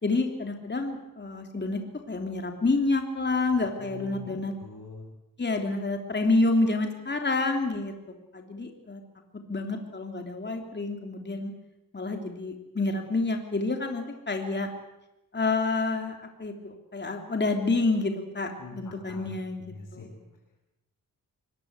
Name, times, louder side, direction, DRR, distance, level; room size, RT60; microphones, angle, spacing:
voice 1, 0.0-1.8 2.1-4.5 5.4-7.9 8.3-9.0 9.5-11.5 11.9-14.7 15.3-19.6 19.9-20.2, left 3 dB, 30° left, 4 dB, 3.3 m, -28 dB
voice 2, 3.5-5.0 18.6-19.3 19.6-20.1, left 2 dB, 65° left, -4 dB, 7.2 m, -44 dB
24.5 x 20.5 x 8.3 m, 0.93 s
wide cardioid pair, 100°, 35 cm